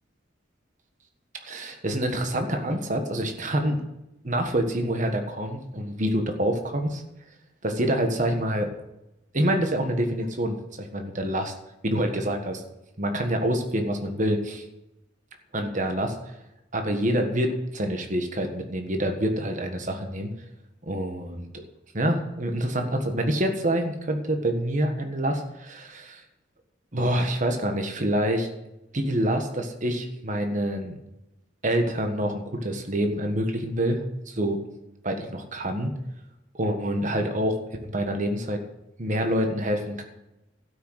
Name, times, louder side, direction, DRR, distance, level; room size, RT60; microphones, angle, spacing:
voice 1, 1.4-3.8 4.2-7.0 7.6-8.7 9.3-11.5 11.8-12.6 13.0-14.6 15.5-16.3 16.7-20.3 20.8-21.5 21.9-26.2 26.9-28.5 28.9-30.9 31.6-34.6 35.0-35.9 36.5-38.6 39.0-40.0, right 1 dB, 40° right, 4 dB, 1.5 m, -26 dB
12.5 x 6.3 x 8.0 m, 0.91 s
head